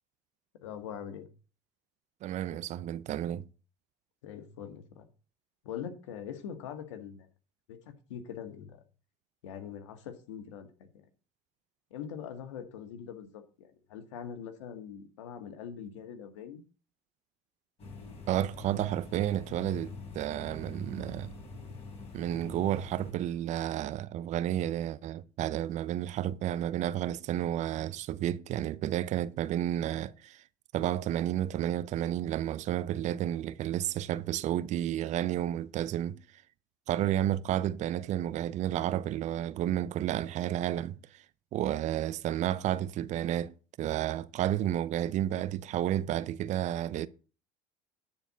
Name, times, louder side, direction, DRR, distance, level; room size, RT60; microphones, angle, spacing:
voice 1, 0.6-1.3 4.2-5.0 5.6-7.3 7.7-8.8 9.4-11.0 11.9-16.6, left 8 dB, 90° left, 1.6 m, -43 dB
voice 2, 2.2-3.5 18.3-21.3 22.1-30.4 30.7-36.2 36.9-41.2 41.5-47.1, right 12 dB, 50° right, 0.6 m, -31 dB
sound 1, 17.8-23.1, left 3 dB, 40° left, 4.0 m, -45 dB
10.5 x 4.5 x 7.3 m
supercardioid pair, 95°, 15 cm